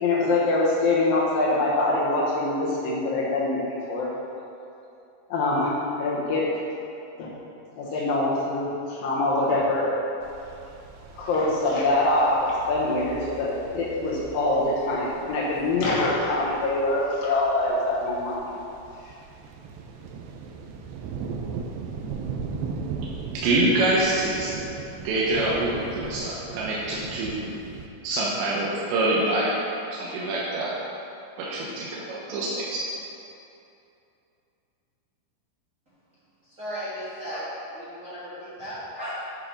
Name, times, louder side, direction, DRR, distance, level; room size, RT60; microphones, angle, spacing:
voice 1, 0.0-3.6 3.9-4.1 5.3-6.4 7.2-7.3 7.8-10.0 11.1-18.5, left 2 dB, 75° left, -5 dB, 2.1 m, -24 dB
sound 1, 10.2-27.9, right 5 dB, 90° right, 2.6 m, -39 dB
voice 2, 23.3-24.7 25.0-27.6 28.0-29.6 29.9-30.7 31.4-32.8, right 2 dB, 70° right, -6 dB, 3.1 m, -25 dB
voice 3, 36.4-39.2, equal, 30° right, -12 dB, 1.6 m, -35 dB
9.0 x 7.2 x 5.5 m, 2.8 s
omnidirectional pair, 5.8 m